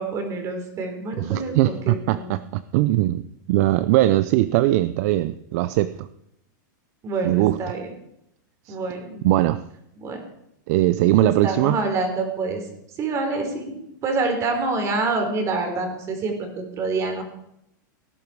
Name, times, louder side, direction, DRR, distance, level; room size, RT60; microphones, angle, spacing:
voice 1, 0.0-2.3 7.0-7.9 8.7-9.2 10.0-10.2 11.2-12.6 13.0-17.2, right 3 dB, 30° right, 5 dB, 3.7 m, -27 dB
voice 2, 1.2-3.2 3.5-6.1 7.2-7.6 8.7-8.8 9.2-9.6 10.7-11.8, right 15 dB, 50° right, 14 dB, 0.6 m, -20 dB
18.0 x 10.5 x 4.8 m, 0.78 s
supercardioid pair, 145°, 11 cm